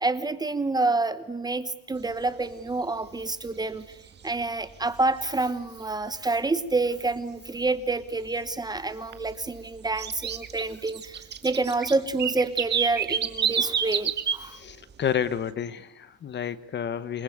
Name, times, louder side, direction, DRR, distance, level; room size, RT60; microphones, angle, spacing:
voice 1, 0.0-3.8 4.2-14.6, right 3 dB, 10° right, 13 dB, 1.1 m, -28 dB
sound 1, 2.0-2.1 2.5-2.7 3.0-3.5 3.9-5.1 5.5-5.6 6.1-6.2 6.7-6.8 7.2-7.3 7.7-8.5 8.7-14.4 14.7-15.1, right 7 dB, 35° right, 1.8 m, -29 dB
voice 2, 14.4-17.2, left 8 dB, 35° left, 15 dB, 1.1 m, -30 dB
27.5 x 21.5 x 8.0 m, 0.75 s
cardioid pair, 160°, 32 cm